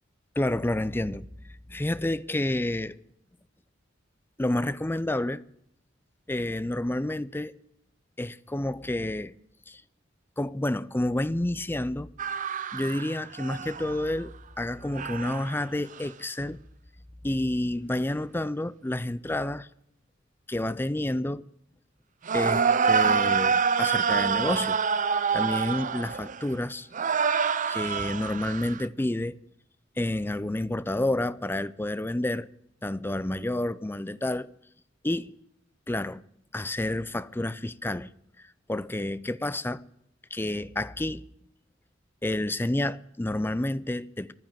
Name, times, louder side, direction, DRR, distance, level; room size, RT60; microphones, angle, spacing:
voice 1, 0.4-1.3 1.7-3.0 4.4-5.4 6.3-7.6 8.2-9.3 9.7-9.8 10.4-12.1 12.7-16.6 17.2-19.7 20.5-21.4 22.3-24.8 25.3-26.9 27.7-29.4 30.0-32.5 32.8-34.5 35.0-35.3 35.9-36.2 36.5-38.1 38.7-39.8 40.3-41.2 42.2-44.3, left 1 dB, 10° left, 0.5 m, -29 dB
sound 1, 12.2-14.1 14.9-15.6 16.0-16.1 22.3-26.6 26.9-28.9, right 6 dB, 40° right, 0.6 m, -26 dB
11.5 x 9.7 x 8.9 m
head